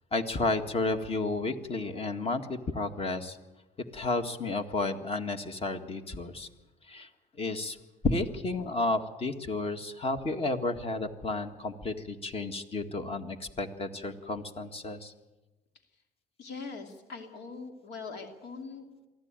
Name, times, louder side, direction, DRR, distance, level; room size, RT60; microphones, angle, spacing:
voice 1, 0.1-3.4 3.9-6.5 6.9-7.1 7.4-7.8 8.0-15.1, left 2 dB, 35° left, 7 dB, 1.9 m, -32 dB
voice 2, 16.4-18.9, left 4 dB, 80° left, 4 dB, 2.8 m, -42 dB
23.5 x 14.5 x 9.0 m, 1.1 s
cardioid pair, 110°, 17 cm